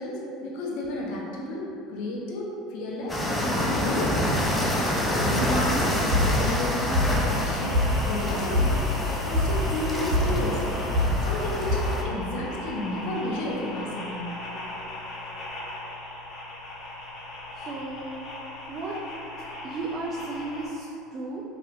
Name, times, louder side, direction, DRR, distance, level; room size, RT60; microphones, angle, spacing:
voice 1, 0.0-1.6 1.9-3.2 3.6-4.3 5.0-8.8 9.1-10.6 11.2-14.8 15.3-15.4, left 1 dB, 65° left, -3 dB, 0.6 m, -32 dB
sound 1, 3.1-12.0, left 1 dB, 15° left, 0.5 m, -28 dB
sound 2, 5.5-11.8, left 1 dB, 60° right, 1.2 m, -26 dB
sound 3, 7.0-20.7, left 1 dB, 40° left, 0.9 m, -38 dB
voice 2, 17.6-18.2 18.7-19.0 19.6-21.4, right 2 dB, 40° right, -3 dB, 0.4 m, -34 dB
3.1 x 2.9 x 2.5 m, 2.7 s
hypercardioid pair, 90°, 0 cm